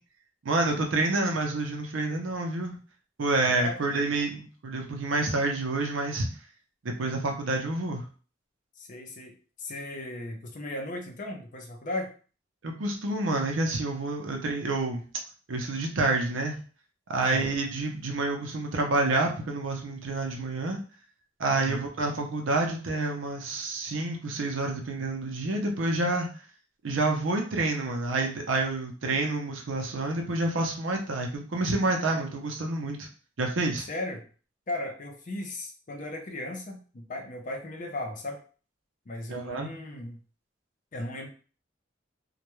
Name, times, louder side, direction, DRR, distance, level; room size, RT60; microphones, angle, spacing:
voice 1, 0.4-2.7 3.2-6.3 6.8-8.0 12.6-15.0 15.5-16.6 17.1-20.8 21.4-26.3 26.8-33.1 33.4-33.9 39.3-39.7, right 2 dB, 80° right, 3 dB, 0.6 m, -28 dB
voice 2, 3.4-3.8 8.8-9.3 9.6-12.1 17.2-17.5 21.5-21.8 33.9-34.3 34.7-38.4 39.1-40.2 40.9-41.3, left 1 dB, 40° left, 2 dB, 0.5 m, -36 dB
2.2 x 2.2 x 3.0 m, 0.38 s
head